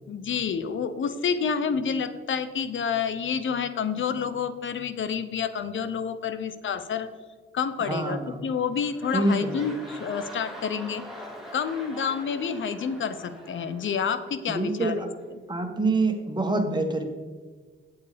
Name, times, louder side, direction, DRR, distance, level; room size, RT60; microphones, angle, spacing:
voice 1, 0.1-7.1 7.5-11.0 11.5-15.1, left 6 dB, 65° left, 12 dB, 0.8 m, -29 dB
voice 2, 7.8-8.4 9.1-9.6 14.5-15.1 15.5-17.0, right 2 dB, 20° right, 3 dB, 1.6 m, -26 dB
sound 1, 8.2-8.4 8.7-14.5 15.2-15.3, equal, ahead, 2.8 m, -43 dB
8.4 x 7.2 x 5.1 m, 1.4 s
cardioid pair, 70°, 21 cm